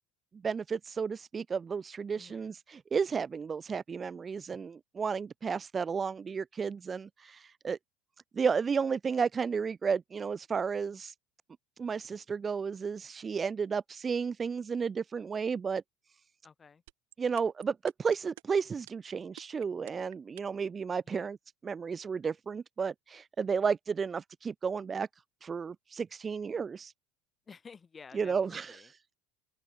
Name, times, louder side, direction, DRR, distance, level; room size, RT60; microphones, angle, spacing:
voice 1, 0.4-7.8 8.3-11.1 11.8-15.8 17.2-21.4 21.6-25.1 25.4-26.9 28.1-29.2, right 6 dB, 20° right, 0.3 m, -33 dB
voice 2, 2.1-2.5 16.4-16.8 21.1-21.3 27.5-28.9, left 5 dB, 20° left, 1.8 m, -52 dB
sound 1, 16.9-20.7, right 22 dB, 90° right, 7.2 m, -50 dB
open air
cardioid pair, 145°, 0 cm